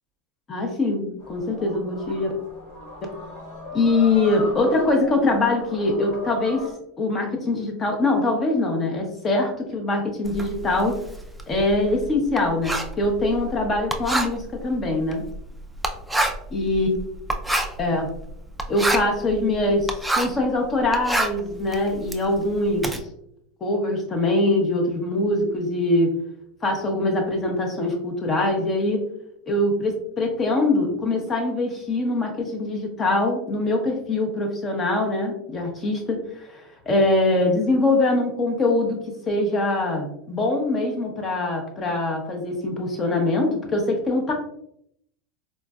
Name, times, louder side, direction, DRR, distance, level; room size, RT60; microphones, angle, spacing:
voice 1, 0.5-2.3 3.7-6.7 7.0-11.0 11.5-15.2 16.5-16.9 17.8-18.1 18.7-23.0 23.6-26.1 26.6-29.0 29.5-39.0 39.3-44.3, left 2 dB, 25° left, 3 dB, 0.8 m, -23 dB
sound 1, 1.2-6.7, left 2 dB, 80° left, 1.5 m, -38 dB
Writing, 10.2-20.5 20.8-23.0, right 1 dB, 5° right, 0.3 m, -28 dB
4.0 x 2.4 x 2.2 m, 0.73 s
supercardioid pair, 135°, 0 cm